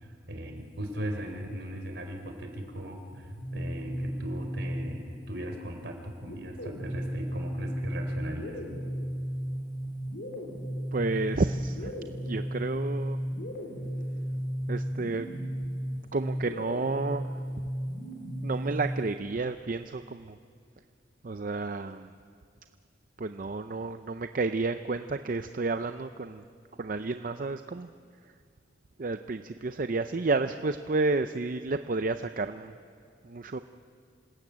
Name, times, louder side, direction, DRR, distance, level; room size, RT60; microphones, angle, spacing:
voice 1, 0.0-8.6, equal, 70° right, 4 dB, 3.9 m, -38 dB
sound 1, 3.1-5.3 6.2-19.1, equal, 70° left, 4.3 m, -34 dB
voice 2, 10.9-11.9 12.3-13.2 14.7-15.3 16.1-17.3 18.4-20.4 21.2-22.1 23.2-26.4 26.8-27.9 29.0-32.7 33.2-33.6, right 3 dB, 45° right, 9 dB, 0.6 m, -31 dB
26.5 x 20.0 x 8.7 m, 2.3 s
head